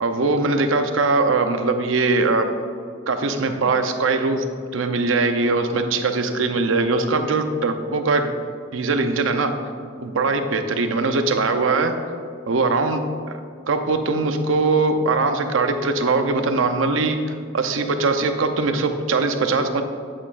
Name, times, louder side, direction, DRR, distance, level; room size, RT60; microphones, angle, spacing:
voice 1, 0.0-2.5 3.1-4.4 4.7-8.3 8.7-9.5 10.0-11.9 12.5-13.4 13.7-17.2 17.5-19.8, right 3 dB, 90° right, 7 dB, 0.6 m, -21 dB
8.9 x 8.6 x 2.5 m, 2.2 s
head